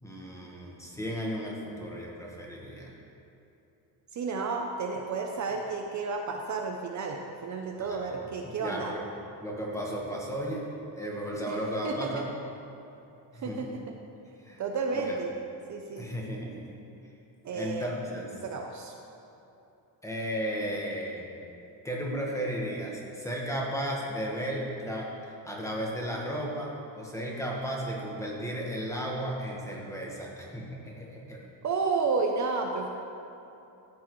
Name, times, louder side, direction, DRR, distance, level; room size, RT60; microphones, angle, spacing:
voice 1, 0.0-2.9 7.8-8.1 8.4-9.0 9.4-10.6 10.9-12.2 13.3-13.7 14.4-14.6 14.9-15.2 16.0-16.8 17.5-18.3 20.0-21.3 21.8-31.4, equal, 5° left, -3 dB, 1.3 m, -34 dB
voice 2, 4.1-8.9 11.5-11.6 11.8-12.3 13.4-13.7 14.6-15.3 15.7-16.1 17.4-17.9 18.4-18.9 31.6-32.9, right 4 dB, 40° right, 2 dB, 0.6 m, -31 dB
13.5 x 8.3 x 3.1 m, 2.9 s
cardioid pair, 150°, 43 cm